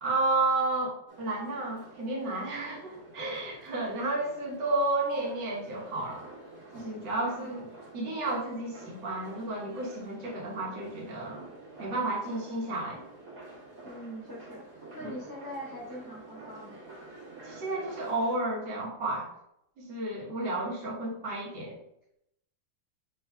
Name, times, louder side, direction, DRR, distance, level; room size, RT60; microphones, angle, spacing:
voice 1, 0.0-6.3 6.7-7.7 7.9-11.5 11.8-13.0 15.0-15.1 17.4-19.3 19.8-21.8, right 2 dB, 80° right, -4 dB, 1.8 m, -32 dB
sound 1, 1.1-18.4, right 2 dB, 65° right, 1.9 m, -49 dB
voice 2, 7.2-7.7 13.8-16.8, equal, 20° left, -5 dB, 0.6 m, -43 dB
6.3 x 3.2 x 2.2 m, 0.78 s
omnidirectional pair, 1.9 m